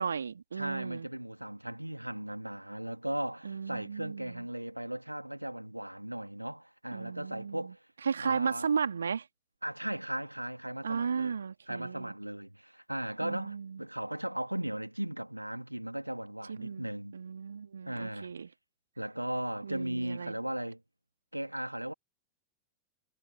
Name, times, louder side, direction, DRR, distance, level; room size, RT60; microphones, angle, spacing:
voice 1, 0.0-1.1 3.5-4.4 6.9-7.6 8.1-9.2 10.8-12.1 13.2-13.7 16.6-16.9 17.1-18.5 19.6-20.4, right 6 dB, 70° right, 2.1 m, -34 dB
voice 2, 0.5-7.8 8.2-8.7 9.6-11.4 11.7-17.1 17.9-18.3 19.0-20.8 21.3-21.9, right 1 dB, 90° right, 2.2 m, -37 dB
figure-of-eight pair, 90°, 0 cm